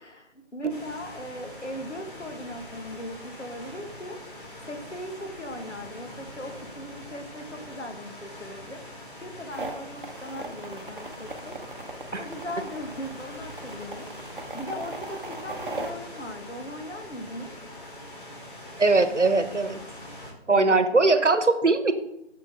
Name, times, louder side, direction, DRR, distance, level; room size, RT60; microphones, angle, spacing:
voice 1, 0.0-4.2 4.7-8.8 9.2-11.6 12.2-14.1 14.5-17.5 20.5-20.8, left 1 dB, 80° left, 5 dB, 1.6 m, -39 dB
sound 1, 0.7-20.3, left 1 dB, 45° left, 2.9 m, -43 dB
sound 2, 9.5-15.9, right 2 dB, 50° right, 1.2 m, -38 dB
voice 2, 18.8-19.8 20.5-21.9, right 3 dB, 90° right, 11 dB, 1.1 m, -21 dB
8.8 x 6.6 x 3.8 m, 0.82 s
figure-of-eight pair, 165°, 35 cm